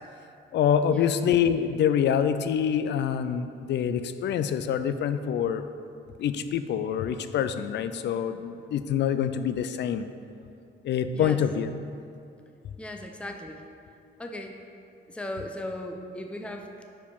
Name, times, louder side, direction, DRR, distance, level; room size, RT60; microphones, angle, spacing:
voice 1, 0.5-5.6 6.2-10.1 10.8-11.7, left 8 dB, 60° left, 11 dB, 0.4 m, -26 dB
voice 2, 12.8-13.6 14.2-14.6 15.1-16.8, left 1 dB, 5° left, 4 dB, 0.5 m, -37 dB
4.9 x 4.7 x 5.3 m, 2.5 s
cardioid pair, 90°, 20 cm